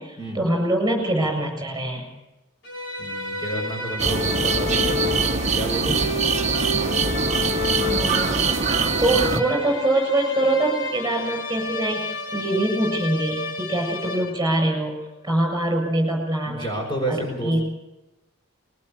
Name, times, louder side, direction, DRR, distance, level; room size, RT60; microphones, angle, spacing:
voice 1, 0.0-2.1 7.9-8.6 9.0-15.0 15.2-16.7 17.1-17.6, right 1 dB, 15° right, 3 dB, 7.5 m, -24 dB
sound 1, 2.6-14.7, left 3 dB, 60° left, 5.9 m, -30 dB
voice 2, 3.0-5.9 16.5-17.6, right 1 dB, 25° left, 0 dB, 5.1 m, -30 dB
sound 2, 4.0-9.4, right 5 dB, 35° right, 1.0 m, -23 dB
22.0 x 19.0 x 8.6 m, 0.96 s
head